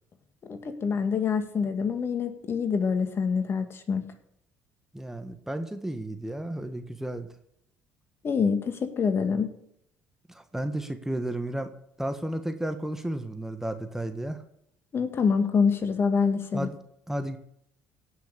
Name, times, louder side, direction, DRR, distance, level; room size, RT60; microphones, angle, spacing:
voice 1, 0.5-4.0 8.2-9.5 14.9-16.7, left 5 dB, 40° left, 8 dB, 1.9 m, -26 dB
voice 2, 4.9-7.3 10.3-11.7 12.0-14.4 16.5-16.8 17.1-17.4, right 1 dB, 5° right, 7 dB, 1.4 m, -33 dB
16.5 x 6.5 x 6.8 m, 0.74 s
hypercardioid pair, 60°, 6 cm